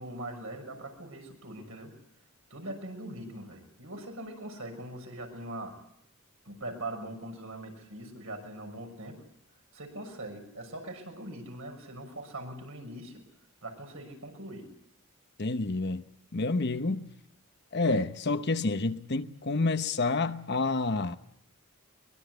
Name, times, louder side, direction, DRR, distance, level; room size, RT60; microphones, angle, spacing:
voice 1, 0.0-1.9 2.5-5.8 6.4-9.2 9.7-13.2 13.6-14.7, right 1 dB, 70° right, 6.2 m, -41 dB
voice 2, 15.4-16.0 16.3-17.1 17.7-21.2, left 3 dB, 50° left, 1.0 m, -28 dB
23.0 x 22.0 x 8.0 m
head